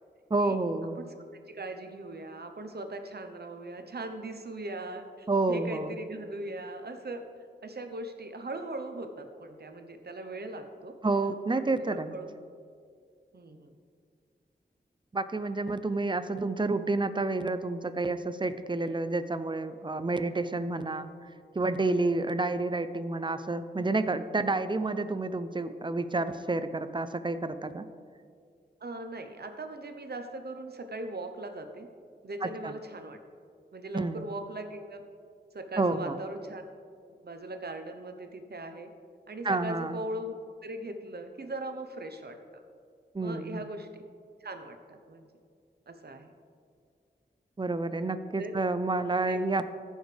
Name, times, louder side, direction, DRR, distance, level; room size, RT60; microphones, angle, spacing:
voice 1, 0.3-1.0 5.3-6.0 11.0-12.1 15.1-21.1 21.5-27.9 32.4-32.7 33.9-34.2 35.8-36.2 39.4-40.0 43.1-43.7 47.6-49.6, right 3 dB, 25° right, 11 dB, 0.5 m, -29 dB
voice 2, 1.0-7.2 7.6-10.9 11.5-12.3 13.3-13.7 28.8-31.9 32.2-33.2 33.7-35.1 35.5-36.6 37.2-38.9 39.3-40.3 40.6-42.6 43.2-44.0 44.4-45.3 45.9-46.3 48.4-48.5 49.3-49.4, right 2 dB, 65° right, 6 dB, 0.9 m, -40 dB
15.0 x 6.4 x 3.4 m, 2.3 s
wide cardioid pair, 60°, 18 cm